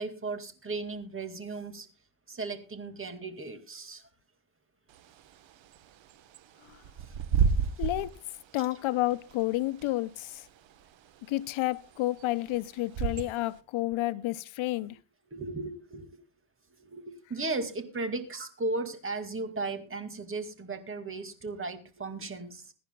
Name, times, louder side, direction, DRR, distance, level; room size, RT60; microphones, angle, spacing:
voice 1, 0.0-1.9 2.3-4.0 15.3-16.1 16.8-22.7, right 3 dB, 25° right, 2.2 m, -36 dB
Bird / Wind, 4.9-13.6, right 6 dB, 70° right, 1.3 m, -33 dB
voice 2, 7.8-8.1 8.5-10.5 11.3-15.0, left 17 dB, 80° left, 0.7 m, -30 dB
22.0 x 10.5 x 2.3 m
cardioid pair, 110°, 47 cm